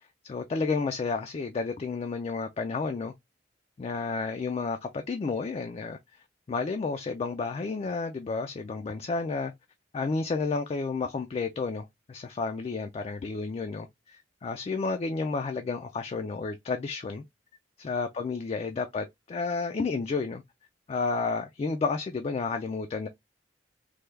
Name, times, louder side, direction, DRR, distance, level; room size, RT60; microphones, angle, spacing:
voice 1, 0.2-3.1 3.8-6.0 6.5-9.5 9.9-17.2 17.8-20.4 20.9-23.1, left 4 dB, 35° left, 0.3 m, -31 dB
3.3 x 2.2 x 3.1 m
head